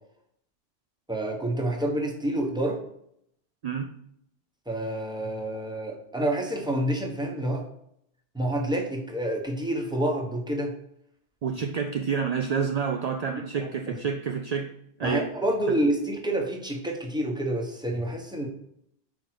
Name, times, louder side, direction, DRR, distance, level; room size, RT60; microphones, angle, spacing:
voice 1, 1.1-2.8 4.7-7.6 8.3-10.7 13.6-13.9 15.0-18.5, right 1 dB, 5° right, 1 dB, 1.0 m, -28 dB
voice 2, 11.4-14.7 15.0-15.3, right 6 dB, 55° right, 5 dB, 0.4 m, -28 dB
5.2 x 4.6 x 6.0 m, 0.74 s
omnidirectional pair, 1.2 m